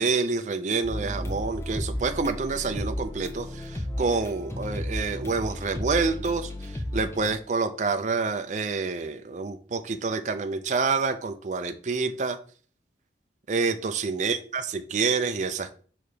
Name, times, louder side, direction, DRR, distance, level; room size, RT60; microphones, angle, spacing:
voice 1, 0.0-6.5 6.9-12.4 13.5-15.7, right 4 dB, 40° right, 7 dB, 0.4 m, -27 dB
sound 1, 0.8-7.4, left 1 dB, 15° left, 0.8 m, -33 dB
6.3 x 3.4 x 5.0 m, 0.43 s
head